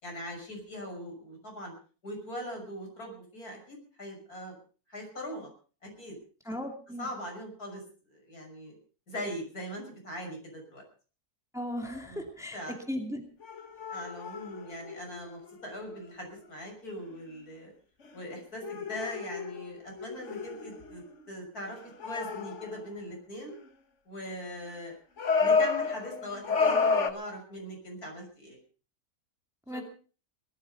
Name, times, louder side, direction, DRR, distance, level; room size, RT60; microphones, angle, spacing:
voice 1, 0.0-1.7 2.0-4.5 4.9-5.5 5.8-6.2 7.0-7.8 8.1-8.8 9.1-10.8 12.1-12.3 12.5-12.8 13.9-17.7 18.1-23.5 24.1-24.9 25.4-28.6 29.7-29.8, left 1 dB, 75° left, 2 dB, 6.7 m, -41 dB
voice 2, 6.5-7.1 11.5-12.6 12.9-13.2 29.7-29.8, equal, ahead, 4 dB, 2.5 m, -36 dB
sound 1, 11.8-12.1 13.4-15.9 16.3-16.4 18.1-18.2 18.6-21.2 21.8-22.9 25.2-27.1, left 4 dB, 50° left, 1.6 m, -30 dB
19.0 x 13.5 x 5.2 m, 0.39 s
omnidirectional pair, 1.6 m